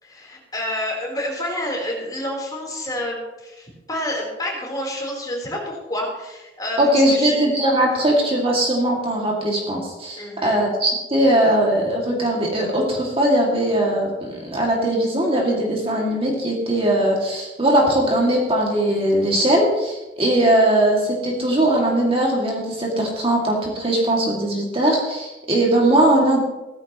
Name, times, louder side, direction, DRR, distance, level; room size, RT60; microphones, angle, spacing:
voice 1, 0.0-7.4 10.2-10.6, left 1 dB, 20° left, -2 dB, 4.0 m, -29 dB
voice 2, 6.8-26.4, right 1 dB, 30° right, -2 dB, 2.4 m, -20 dB
16.5 x 14.5 x 3.1 m, 1.1 s
head